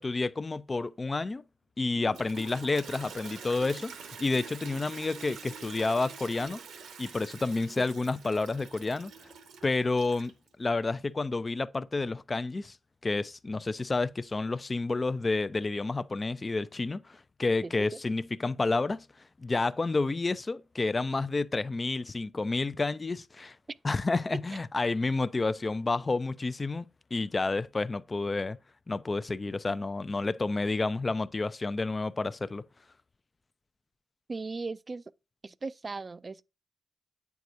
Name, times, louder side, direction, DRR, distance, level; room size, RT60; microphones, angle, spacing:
voice 1, 0.0-1.4 1.8-3.9 4.2-6.6 7.0-9.3 9.6-10.3 10.6-12.8 13.0-19.1 19.4-23.5 23.8-26.8 27.1-28.6 28.9-32.6, left 3 dB, 35° left, 0.4 m, -30 dB
Toilet flush, 1.9-10.5, right 5 dB, 85° right, 0.9 m, -46 dB
voice 2, 17.6-18.0 24.3-24.4 34.3-35.0 35.4-36.4, right 3 dB, 40° right, 0.3 m, -37 dB
8.2 x 4.7 x 2.6 m
cardioid pair, 60°, 0 cm